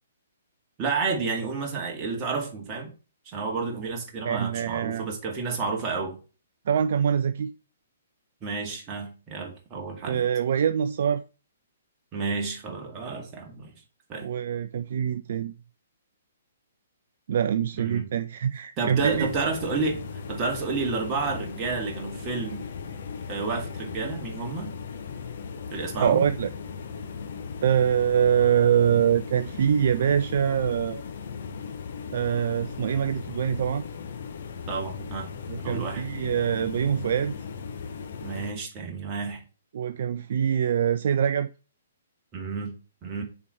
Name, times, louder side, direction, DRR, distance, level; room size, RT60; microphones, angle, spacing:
voice 1, 0.8-2.9 3.3-6.2 8.4-10.3 12.1-13.7 14.1-14.3 17.7-18.1 18.8-22.6 23.3-24.7 25.7-26.3 34.7-35.3 35.6-36.0 38.2-39.4 42.3-42.7 43.0-43.2, right 4 dB, 25° right, 2.0 m, -30 dB
voice 2, 4.2-5.1 6.7-7.5 10.0-11.2 14.2-15.5 17.3-19.3 26.0-26.5 27.6-31.0 32.1-33.8 35.5-37.3 39.7-41.5, right 8 dB, 50° right, 0.4 m, -24 dB
sound 1, 18.9-38.5, left 5 dB, 50° left, 1.0 m, -37 dB
6.8 x 4.5 x 4.4 m
figure-of-eight pair, 120°, 0 cm